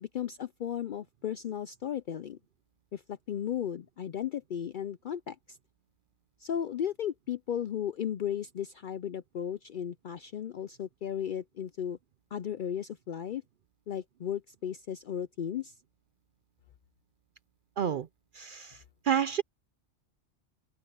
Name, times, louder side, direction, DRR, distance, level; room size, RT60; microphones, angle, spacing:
voice 1, 0.0-2.4 2.9-5.6 6.4-12.0 12.3-13.4 13.9-15.8, left 9 dB, 65° left, 0.5 m, -35 dB
voice 2, 17.8-18.1 18.3-19.4, right 8 dB, 60° right, 0.5 m, -30 dB
open air
omnidirectional pair, 1.3 m